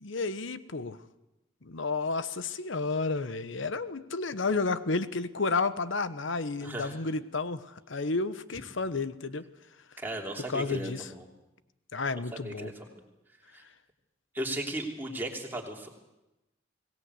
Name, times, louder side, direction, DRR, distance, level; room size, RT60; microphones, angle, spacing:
voice 1, 0.0-1.0 1.6-9.5 10.5-11.1 11.9-12.7, left 3 dB, 70° left, 13 dB, 1.0 m, -31 dB
voice 2, 6.6-7.0 10.0-11.3 12.4-13.0 13.5-13.6 14.3-15.9, right 1 dB, 10° right, 0 dB, 3.1 m, -36 dB
23.5 x 18.5 x 8.2 m, 0.97 s
head